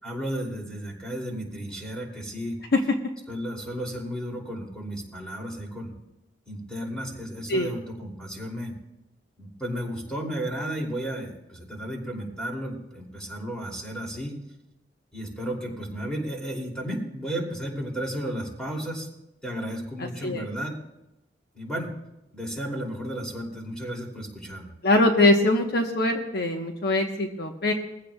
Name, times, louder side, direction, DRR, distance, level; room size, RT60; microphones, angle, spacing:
voice 1, 0.0-2.6 3.3-5.9 6.5-8.7 9.4-14.4 15.1-19.1 19.4-20.7 21.5-21.9 22.3-24.7, equal, 5° left, -2 dB, 3.0 m, -33 dB
voice 2, 24.8-27.7, left 2 dB, 60° left, 3 dB, 1.2 m, -22 dB
21.5 x 15.0 x 2.4 m, 0.92 s
head